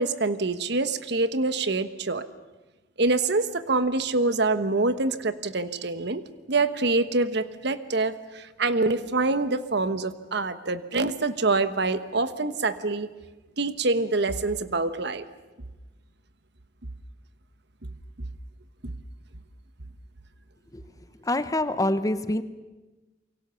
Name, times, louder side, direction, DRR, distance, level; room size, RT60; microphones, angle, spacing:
voice 1, 0.0-2.2 3.0-6.2 6.5-13.1 13.6-15.2 18.8-18.9, right 3 dB, 65° right, 12 dB, 1.2 m, -25 dB
voice 2, 21.3-22.4, left 1 dB, 20° left, 12 dB, 1.0 m, -25 dB
28.5 x 23.5 x 7.0 m, 1.2 s
head